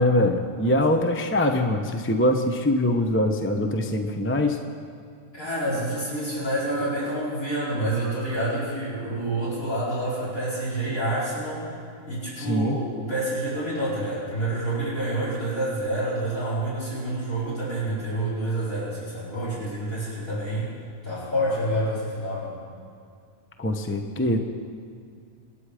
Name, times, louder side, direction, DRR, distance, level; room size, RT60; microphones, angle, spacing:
voice 1, 0.0-4.6 12.4-12.8 23.6-24.4, left 1 dB, 10° left, 4 dB, 0.7 m, -23 dB
voice 2, 5.3-11.8 12.0-20.7 21.0-22.5, right 1 dB, 70° left, -9 dB, 5.3 m, -28 dB
26.0 x 10.5 x 5.0 m, 2.3 s
omnidirectional pair, 1.5 m